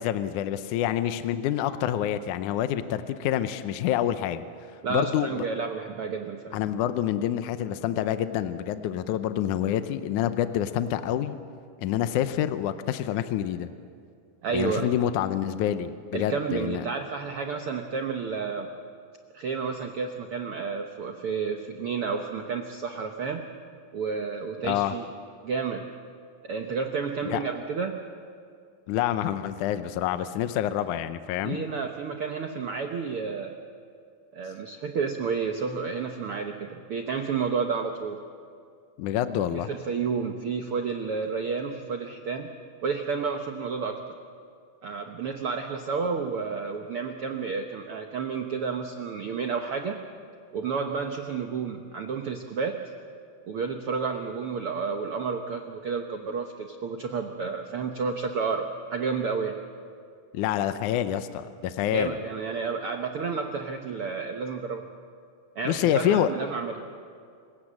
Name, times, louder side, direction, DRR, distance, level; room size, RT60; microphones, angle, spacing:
voice 1, 0.0-4.4 4.9-5.5 6.5-11.4 11.8-13.7 14.5-16.9 24.6-24.9 27.3-27.4 28.9-31.6 39.0-39.7 60.3-62.2 65.7-66.3, left 11 dB, 75° left, 10 dB, 2.0 m, -27 dB
voice 2, 4.8-6.6 14.4-14.9 16.1-18.7 19.3-23.4 23.9-25.1 25.4-25.9 26.4-28.0 31.4-33.5 34.3-38.2 39.5-42.5 42.8-44.0 44.8-50.0 50.5-52.8 53.5-59.6 61.9-64.8 65.5-66.8, right 5 dB, 80° right, 4 dB, 1.2 m, -31 dB
28.0 x 16.5 x 7.5 m, 2.3 s
omnidirectional pair, 4.1 m